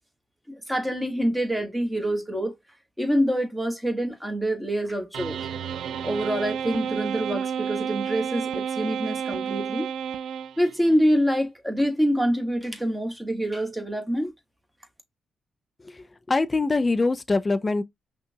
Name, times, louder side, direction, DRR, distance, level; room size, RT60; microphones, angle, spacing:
voice 1, 0.5-2.5 3.0-5.4 6.0-9.9 10.6-14.3, equal, 5° right, 1.3 m, -26 dB
sound 1, 5.1-10.9, right 7 dB, 85° right, 0.4 m, -31 dB
voice 2, 16.0-17.8, left 3 dB, 25° left, 0.4 m, -24 dB
5.6 x 2.3 x 2.6 m
cardioid pair, 120°, 0 cm